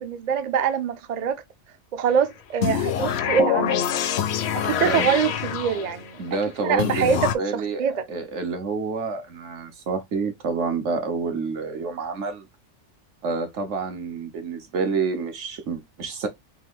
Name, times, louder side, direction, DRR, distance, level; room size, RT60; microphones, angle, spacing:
voice 1, 0.0-1.4 1.9-3.9 4.5-6.2 6.6-8.0, right 7 dB, 50° right, 0.5 m, -24 dB
sound 1, 2.6-6.1 6.8-7.3, left 9 dB, 70° left, 0.8 m, -25 dB
voice 2, 6.2-7.8 8.1-12.5 13.2-16.3, right 4 dB, 80° right, 1.4 m, -28 dB
3.6 x 3.2 x 3.4 m
omnidirectional pair, 1.2 m